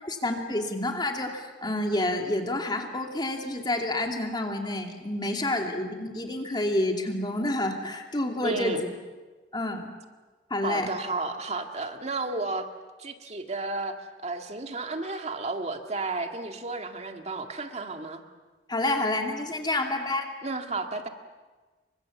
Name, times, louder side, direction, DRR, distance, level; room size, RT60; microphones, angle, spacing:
voice 1, 0.0-8.9 9.5-9.9 10.5-10.9 18.7-20.3, left 1 dB, 25° left, 3 dB, 2.7 m, -29 dB
voice 2, 8.4-8.8 10.6-12.7 13.0-14.0 14.2-18.2 20.4-21.1, right 3 dB, 40° right, 5 dB, 2.1 m, -32 dB
29.0 x 24.5 x 7.3 m, 1.3 s
head